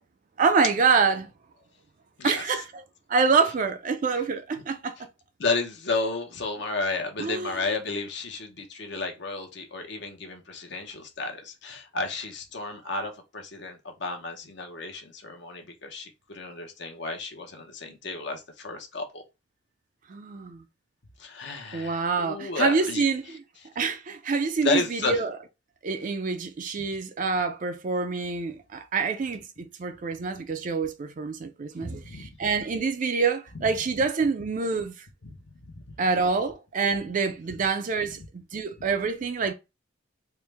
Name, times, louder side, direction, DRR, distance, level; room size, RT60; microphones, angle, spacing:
voice 1, 0.4-1.3 2.2-2.8 3.1-5.0 7.2-7.7 20.1-20.6 21.7-23.4 23.8-25.4 25.8-35.0 36.0-39.5, right 4 dB, 40° right, 0.4 m, -26 dB
voice 2, 2.2-2.6 5.4-19.2 21.2-23.0 24.6-25.2 31.8-32.5 35.2-35.3 35.6-35.8, left 3 dB, 60° left, 0.8 m, -32 dB
4.4 x 2.1 x 3.3 m
head